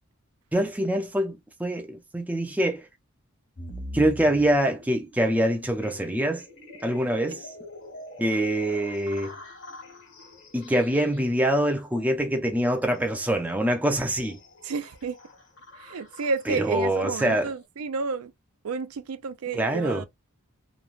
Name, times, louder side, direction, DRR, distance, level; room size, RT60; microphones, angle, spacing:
voice 1, 0.5-2.9 3.9-6.4 6.8-7.5 8.2-9.3 10.5-14.4 16.5-17.5 19.5-20.0, right 1 dB, 5° right, 0.4 m, -25 dB
sound 1, 3.6-17.6, left 1 dB, 55° left, 1.3 m, -45 dB
voice 2, 14.6-15.2 15.8-18.3 18.6-20.0, right 4 dB, 85° right, 0.4 m, -31 dB
3.0 x 2.2 x 2.4 m
head